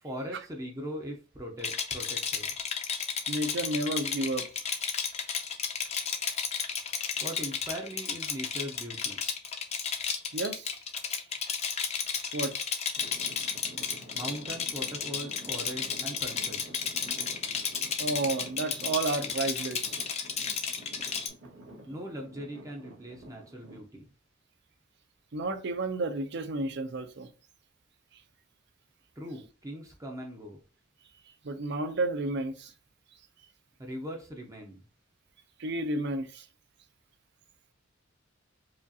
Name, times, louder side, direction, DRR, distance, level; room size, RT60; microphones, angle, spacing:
voice 1, 0.0-2.5 7.2-9.2 14.1-16.9 21.9-24.1 29.2-30.6 33.8-34.8, equal, 15° right, 0.6 m, -40 dB
Rattle, 1.6-21.3, left 6 dB, 30° left, 0.5 m, -33 dB
voice 2, 3.3-4.6 9.8-9.9 10.3-10.8 12.3-12.6 18.0-20.0 25.3-27.3 31.4-32.7 35.6-36.5, right 2 dB, 60° right, 0.5 m, -31 dB
Traffic noise roadway noise / Engine, 12.9-23.8, right 1 dB, 75° right, 1.6 m, -49 dB
4.8 x 2.4 x 2.7 m
head